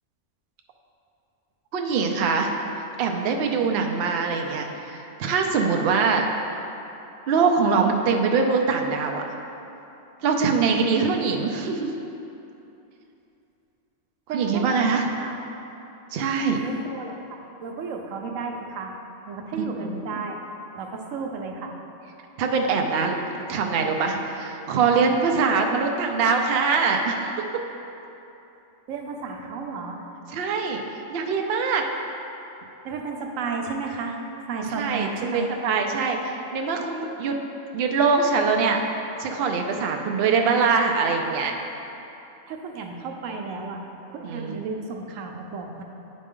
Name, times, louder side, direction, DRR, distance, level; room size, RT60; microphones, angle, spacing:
voice 1, 1.7-2.5 3.0-6.3 7.3-9.2 10.2-11.9 14.3-15.0 16.1-16.6 19.8-20.0 22.4-27.3 30.3-30.8 31.1-31.9 34.8-37.4 37.7-38.8 39.2-41.5 44.2-44.6, right 5 dB, 60° right, 3 dB, 0.7 m, -23 dB
voice 2, 14.3-15.4 16.5-18.9 19.3-20.4 20.7-21.7 28.9-30.1 32.8-34.2 34.5-35.5 42.5-43.8 44.1-45.8, right 4 dB, 90° right, 2 dB, 1.0 m, -33 dB
9.4 x 4.1 x 3.6 m, 2.9 s
omnidirectional pair, 1.3 m